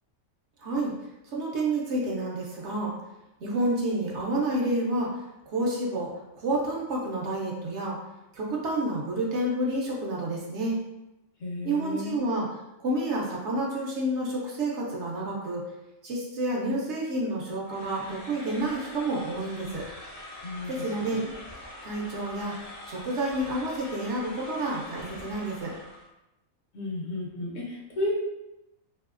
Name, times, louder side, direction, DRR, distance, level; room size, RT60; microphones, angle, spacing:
voice 1, 0.6-0.9 1.2-3.0 3.4-5.2 5.5-8.0 8.3-10.8 11.6-12.5 12.8-15.6 16.0-19.8 20.7-21.2 21.8-25.7, right 1 dB, 65° right, -3 dB, 0.8 m, -29 dB
voice 2, 11.4-12.1 20.4-21.2 26.7-28.1, left 2 dB, 70° left, -3 dB, 1.0 m, -33 dB
sound 1, 17.7-26.1, left 1 dB, 50° left, 0.4 m, -44 dB
2.9 x 2.7 x 2.4 m, 0.94 s
omnidirectional pair, 1.4 m